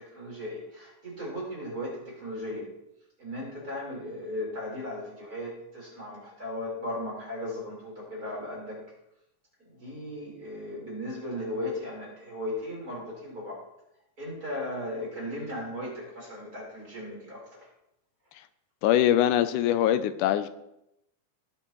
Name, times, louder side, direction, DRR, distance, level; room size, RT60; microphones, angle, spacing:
voice 1, 0.0-2.7 3.2-8.8 9.6-13.6 14.2-17.7, left 1 dB, 30° right, -4 dB, 4.4 m, -36 dB
voice 2, 18.8-20.5, left 11 dB, 90° left, 12 dB, 2.1 m, -23 dB
19.0 x 7.2 x 3.1 m, 0.84 s
omnidirectional pair, 3.5 m